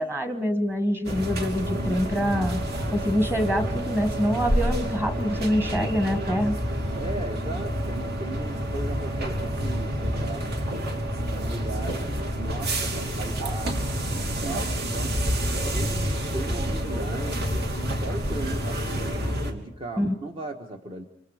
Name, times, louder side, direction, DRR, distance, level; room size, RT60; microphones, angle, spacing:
voice 1, 0.0-2.6 2.9-6.5 20.0-20.1, equal, 10° right, 8 dB, 1.6 m, -25 dB
sound 1, 1.0-19.5, equal, 55° right, 2.8 m, -28 dB
voice 2, 1.7-2.0 6.9-10.5 11.3-15.2 15.7-21.0, right 2 dB, 30° right, 3 dB, 1.4 m, -37 dB
27.0 x 25.5 x 5.0 m, 0.73 s
head